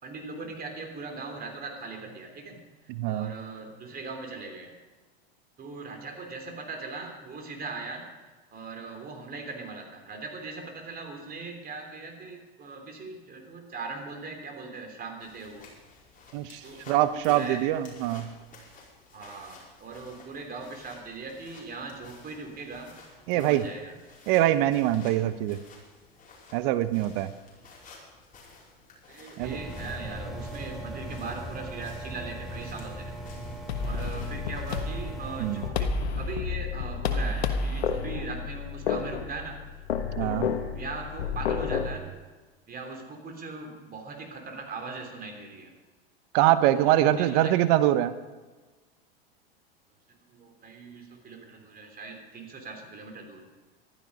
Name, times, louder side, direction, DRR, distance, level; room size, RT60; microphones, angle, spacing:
voice 1, 0.0-2.6 3.0-4.7 5.6-8.0 8.5-15.7 16.6-17.6 19.1-23.9 29.1-33.1 33.8-39.6 40.2-42.1 42.7-45.7 46.7-47.5 50.2-53.4, right 3 dB, 30° right, 3 dB, 3.4 m, -40 dB
voice 2, 2.9-3.3 16.3-18.3 23.3-23.6 24.3-25.6 26.5-27.3 29.4-29.6 35.4-35.6 40.2-40.5 46.3-48.1, right 13 dB, 55° right, 13 dB, 0.8 m, -24 dB
sound 1, 15.2-34.8, left 3 dB, 25° left, 4.9 m, -53 dB
sound 2, 29.4-35.7, right 1 dB, ahead, 2.8 m, -39 dB
sound 3, 33.7-42.0, left 5 dB, 85° left, 1.3 m, -30 dB
15.0 x 12.5 x 5.4 m, 1.3 s
hypercardioid pair, 105°, 31 cm